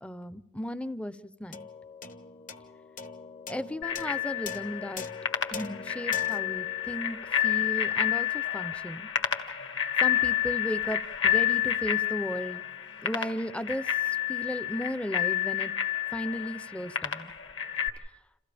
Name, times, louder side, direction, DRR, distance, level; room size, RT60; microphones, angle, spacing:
voice 1, 0.0-1.1 1.4-1.6 3.5-5.1 5.5-7.2 7.4-9.1 10.0-11.0 11.2-12.6 13.0-13.8 14.3-15.7 16.1-17.3, equal, 5° left, 14 dB, 0.6 m, -35 dB
sound 1, 1.5-8.1, left 5 dB, 40° left, 1.0 m, -43 dB
Bicycle bell, 3.8-17.9, left 10 dB, 60° left, 1.8 m, -29 dB
29.5 x 27.5 x 3.4 m, 1.1 s
head